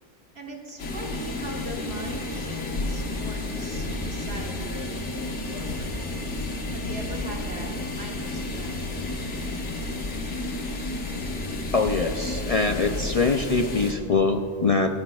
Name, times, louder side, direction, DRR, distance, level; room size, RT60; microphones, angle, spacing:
voice 1, 0.3-5.9 6.7-9.2, right 1 dB, 60° right, 0 dB, 1.6 m, -40 dB
sound 1, 0.8-13.9, left 2 dB, 70° left, 1.6 m, -31 dB
voice 2, 11.7-14.9, left 4 dB, 55° left, 5 dB, 0.4 m, -23 dB
28.5 x 10.0 x 2.3 m, 2.9 s
omnidirectional pair, 1.2 m